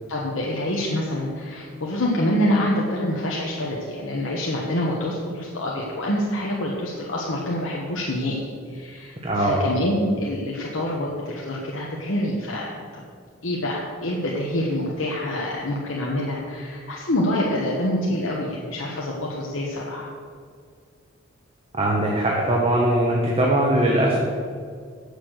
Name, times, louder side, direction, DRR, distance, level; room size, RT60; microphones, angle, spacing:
voice 1, 0.1-12.7 12.9-13.0 13.4-20.1, left 1 dB, 80° left, -4 dB, 1.2 m, -26 dB
voice 2, 9.2-9.7 21.7-24.2, right 1 dB, 30° right, -2 dB, 1.1 m, -20 dB
8.0 x 6.8 x 6.3 m, 2.1 s
head